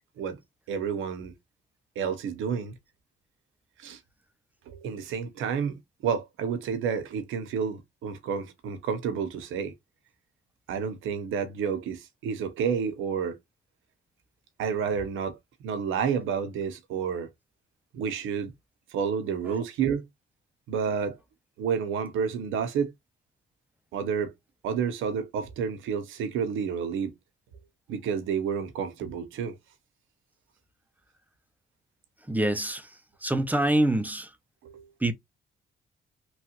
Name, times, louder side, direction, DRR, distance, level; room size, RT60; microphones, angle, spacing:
voice 1, 0.7-1.3 2.0-2.7 3.8-4.0 4.7-9.7 10.7-13.4 14.6-15.4 15.6-17.3 17.9-18.5 18.9-20.1 20.7-21.2 21.6-22.9 23.9-24.3 24.6-27.1 27.9-29.6 34.6-34.9, right 7 dB, 85° right, 0.8 m, -30 dB
voice 2, 32.3-32.9 33.2-34.3 35.0-35.1, right 1 dB, 10° right, 0.5 m, -25 dB
3.1 x 2.4 x 2.9 m
cardioid pair, 90°, 20 cm